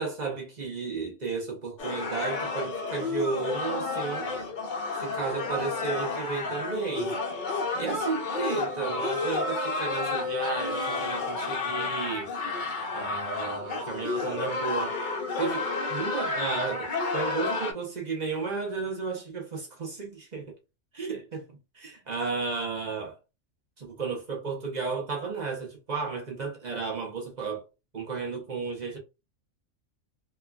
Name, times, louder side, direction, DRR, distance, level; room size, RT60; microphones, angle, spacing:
voice 1, 0.0-4.4 4.9-7.2 7.7-12.3 12.9-15.0 15.4-20.5 20.9-23.2 23.8-27.6 27.9-29.0, right 4 dB, 45° right, 0.6 m, -33 dB
sound 1, 1.8-17.7, left 3 dB, 50° left, 0.6 m, -31 dB
3.0 x 2.3 x 2.2 m
omnidirectional pair, 1.4 m